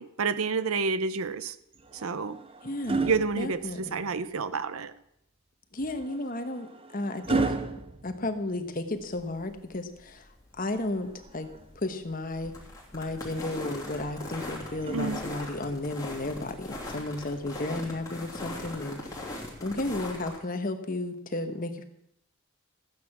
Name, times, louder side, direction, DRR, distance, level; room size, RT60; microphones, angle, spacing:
voice 1, 0.0-1.5 2.0-2.4 3.0-4.9 14.9-15.2, right 4 dB, 80° right, 14 dB, 0.7 m, -29 dB
sound 1, 1.7-4.2 5.8-9.0 10.7-11.9 13.9-15.7 16.9-17.2, right 3 dB, 25° right, 0.7 m, -35 dB
voice 2, 2.6-3.1 3.4-4.0 5.7-6.7 6.9-7.6 8.0-10.2 10.6-11.5 11.8-12.5 12.9-19.2 19.6-21.8, left 2 dB, 40° left, 7 dB, 1.2 m, -33 dB
sound 2, 9.0-20.4, left 2 dB, 15° left, 2.9 m, -40 dB
14.5 x 9.4 x 6.0 m, 0.78 s
head